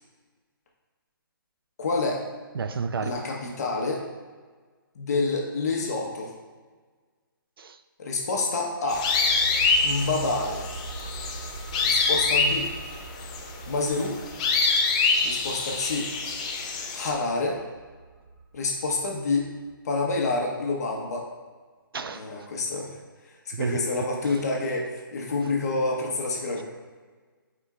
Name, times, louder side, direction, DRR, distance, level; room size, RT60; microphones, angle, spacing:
voice 1, 1.8-2.2 3.0-4.0 4.9-6.3 8.0-9.1 9.8-10.6 11.8-12.7 13.7-14.1 15.2-16.1 16.9-17.6 18.5-19.5 19.8-21.2 22.1-22.9 23.5-26.6, left 3 dB, 45° left, 1.2 m, -28 dB
voice 2, 2.5-3.3 7.6-7.8 21.9-22.3 23.5-23.8 24.2-24.4, right 5 dB, 80° right, 0.5 m, -31 dB
sound 1, 8.9-17.1, left 4 dB, 20° left, 0.4 m, -25 dB
sound 2, 8.9-20.3 20.6-20.7, right 3 dB, 40° right, 1.6 m, -42 dB
8.8 x 4.4 x 2.5 m
hypercardioid pair, 165°, 12 cm